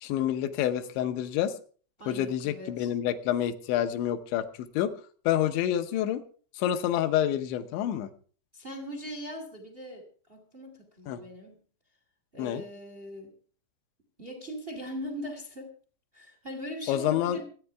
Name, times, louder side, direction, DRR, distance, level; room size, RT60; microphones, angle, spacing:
voice 1, 0.0-1.5 2.1-4.5 4.8-4.9 5.3-6.2 6.6-8.1 11.1-11.2 12.4-12.6 16.9-17.4, left 11 dB, 75° left, 9 dB, 2.9 m, -28 dB
voice 2, 2.0-2.9 8.5-10.0 10.3-11.6 12.3-13.3 14.2-15.7 16.1-17.4, equal, 40° right, 4 dB, 0.8 m, -40 dB
27.5 x 9.1 x 3.5 m, 0.43 s
omnidirectional pair, 5.9 m